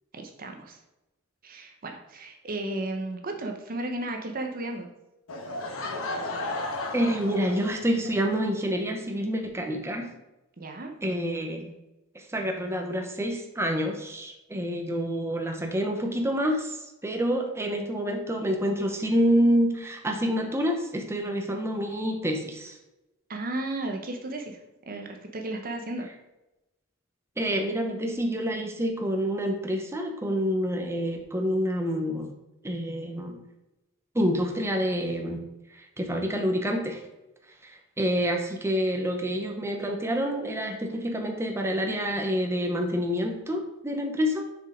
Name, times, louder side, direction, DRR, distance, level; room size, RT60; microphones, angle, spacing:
voice 1, 0.1-0.8 1.4-4.9 10.6-10.9 23.3-24.6 24.9-26.1, right 2 dB, 45° right, 4 dB, 0.8 m, -34 dB
Laughter / Crowd, 5.3-8.1, left 2 dB, 75° left, 1.3 m, -34 dB
voice 2, 6.9-10.1 11.0-11.7 12.1-16.8 17.0-22.8 27.4-32.3 32.6-33.4 34.1-35.4 35.7-37.0 37.6-44.4, equal, 15° right, 2 dB, 0.9 m, -27 dB
6.5 x 4.9 x 5.0 m, 0.97 s
head